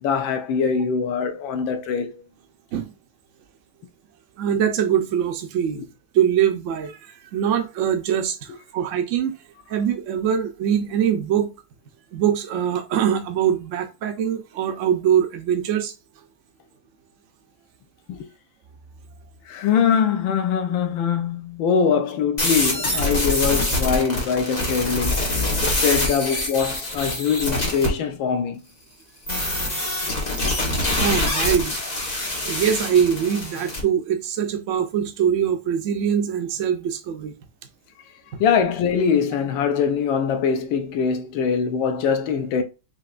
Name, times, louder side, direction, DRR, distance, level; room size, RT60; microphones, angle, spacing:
voice 1, 0.0-2.2 5.7-5.8 18.1-18.3 19.5-28.6 38.4-42.6, left 6 dB, 85° left, 1.5 m, -23 dB
voice 2, 4.4-5.8 6.1-9.3 9.7-11.5 12.1-15.9 31.0-31.7 32.3-37.3, right 9 dB, 80° right, 0.6 m, -23 dB
sound 1, 22.4-27.9 29.3-33.8, left 1 dB, 25° left, 1.2 m, -25 dB
5.5 x 2.9 x 2.4 m
omnidirectional pair, 2.1 m